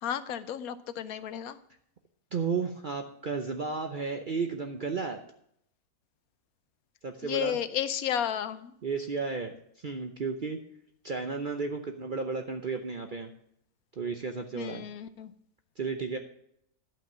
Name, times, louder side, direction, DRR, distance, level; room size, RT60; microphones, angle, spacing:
voice 1, 0.0-1.6 7.2-8.7 14.5-15.3, left 9 dB, 90° left, 13 dB, 1.2 m, -33 dB
voice 2, 2.3-5.2 7.0-7.6 8.8-10.6 11.0-13.3 14.0-14.8 15.8-16.2, right 4 dB, 45° right, 5 dB, 0.8 m, -33 dB
12.0 x 5.8 x 7.3 m, 0.72 s
omnidirectional pair, 1.5 m